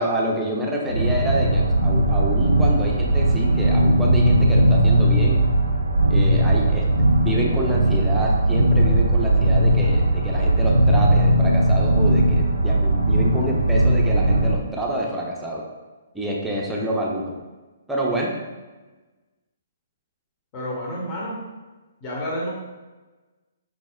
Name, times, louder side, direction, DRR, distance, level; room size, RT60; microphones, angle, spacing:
voice 1, 0.0-5.4 6.1-15.6 16.1-17.3 17.9-18.3, right 1 dB, 5° right, -3 dB, 0.6 m, -27 dB
sound 1, 0.9-14.6, right 1 dB, 85° right, 0.4 m, -18 dB
voice 2, 20.5-21.4 22.0-22.5, equal, 30° left, -5 dB, 0.9 m, -29 dB
4.9 x 2.0 x 3.5 m, 1.2 s
figure-of-eight pair, 130°, 0 cm